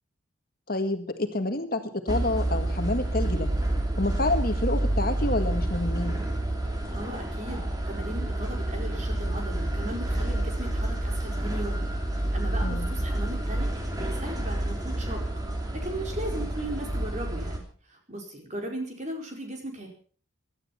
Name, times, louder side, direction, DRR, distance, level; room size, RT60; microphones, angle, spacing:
voice 1, 0.7-3.5 4.0-6.2 12.6-12.9, left 2 dB, 50° left, 7 dB, 1.7 m, -28 dB
sound 1, 2.1-17.6, right 1 dB, 20° right, 2.9 m, -29 dB
voice 2, 6.9-11.9 12.3-15.2 15.7-17.6 17.9-19.9, right 1 dB, 35° right, 2 dB, 4.6 m, -37 dB
17.0 x 12.0 x 5.8 m, 0.43 s
head